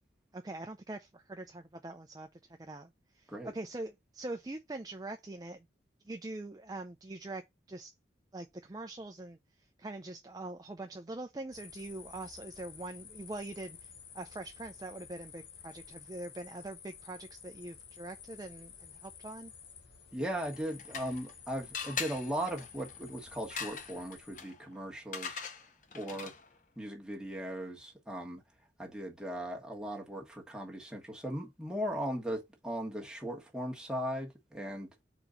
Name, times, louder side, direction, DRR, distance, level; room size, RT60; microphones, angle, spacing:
voice 1, 0.3-2.9 3.1-5.6 6.1-7.4 7.7-7.9 8.3-9.4 9.8-19.5, right 2 dB, 20° right, 0.4 m, -43 dB
sound 1, 11.5-24.4, left 7 dB, 70° left, 1.2 m, -52 dB
voice 2, 20.1-25.4 25.9-26.3 26.8-28.4 28.8-34.9, equal, 5° right, 1.4 m, -38 dB
sound 2, 20.4-21.4 21.7-26.6, left 6 dB, 45° left, 0.8 m, -42 dB
4.4 x 3.9 x 5.5 m
head